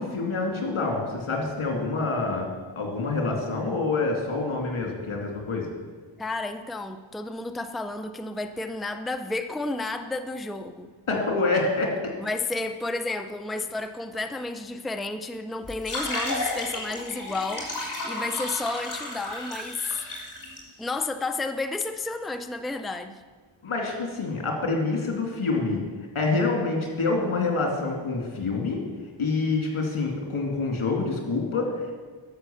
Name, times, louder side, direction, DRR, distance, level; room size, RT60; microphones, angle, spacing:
voice 1, 0.0-2.5 2.7-5.7 11.1-11.9 23.6-25.8 26.1-28.8 29.2-31.9, left 3 dB, 80° left, 1 dB, 2.6 m, -26 dB
voice 2, 6.2-10.9 12.2-20.0 20.8-23.2, left 3 dB, ahead, 9 dB, 0.5 m, -32 dB
sound 1, 15.6-20.6, left 2 dB, 40° left, 3.3 m, -33 dB
11.5 x 6.9 x 7.1 m, 1.4 s
wide cardioid pair, 90°, 48 cm